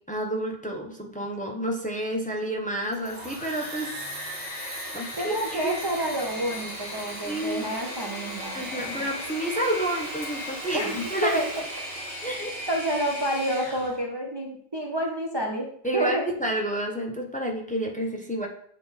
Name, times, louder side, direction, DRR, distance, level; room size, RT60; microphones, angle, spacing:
voice 1, 0.1-4.0 4.5-5.7 7.2-7.6 8.5-11.5 12.2-12.6 15.8-18.5, right 1 dB, 10° left, 1 dB, 0.8 m, -30 dB
Engine / Mechanisms, 2.8-14.0, equal, 45° left, 3.3 m, -36 dB
voice 2, 5.2-9.0 10.7-11.5 12.7-16.2, right 1 dB, 30° right, 0 dB, 0.6 m, -29 dB
7.5 x 3.8 x 4.0 m, 0.63 s
omnidirectional pair, 1.1 m